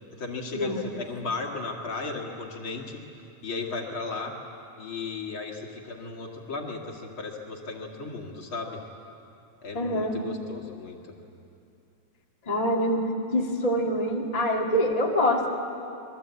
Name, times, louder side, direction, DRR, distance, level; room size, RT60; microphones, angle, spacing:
voice 1, 0.2-3.0 3.4-4.3 4.8-8.8 9.6-11.2, left 3 dB, 40° left, 0 dB, 2.6 m, -35 dB
voice 2, 9.7-10.2 12.4-15.5, equal, 15° left, -1 dB, 1.4 m, -25 dB
27.0 x 23.0 x 8.4 m, 2.6 s
omnidirectional pair, 4.0 m